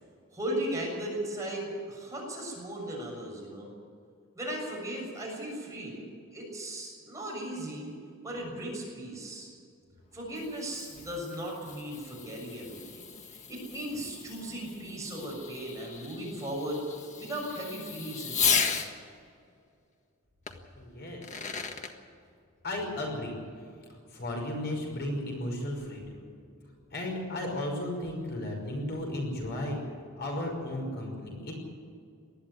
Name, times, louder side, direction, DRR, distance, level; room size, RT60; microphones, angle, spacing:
voice 1, 0.3-3.7 4.4-6.0 6.3-7.9 8.2-9.5 10.1-16.8 17.2-18.7, right 1 dB, 15° right, -2 dB, 7.1 m, -37 dB
Fireworks, 10.1-18.9 20.5-20.6 21.1-21.9, left 6 dB, 35° left, 1.6 m, -35 dB
voice 2, 20.8-21.3 22.6-23.6 23.9-26.3 26.9-29.8 30.2-31.5, left 1 dB, 50° left, 1 dB, 5.6 m, -34 dB
20.0 x 13.5 x 9.7 m, 2.3 s
head